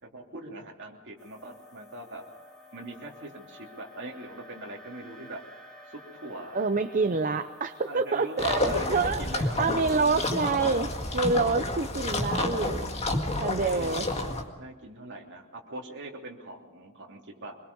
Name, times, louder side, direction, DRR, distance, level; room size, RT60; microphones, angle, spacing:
voice 1, 0.0-2.2 2.7-5.4 5.9-6.6 7.8-10.3 13.4-14.3 14.6-17.6, right 1 dB, 55° right, 0 dB, 3.0 m, -42 dB
sound 1, 1.2-14.5, left 1 dB, 5° left, 3.2 m, -52 dB
voice 2, 6.5-9.2 9.6-12.9 13.4-14.0, right 4 dB, 35° right, 8 dB, 0.6 m, -27 dB
sound 2, 8.4-14.4, left 2 dB, 30° left, 2.0 m, -30 dB
24.5 x 22.0 x 5.4 m, 1.2 s
head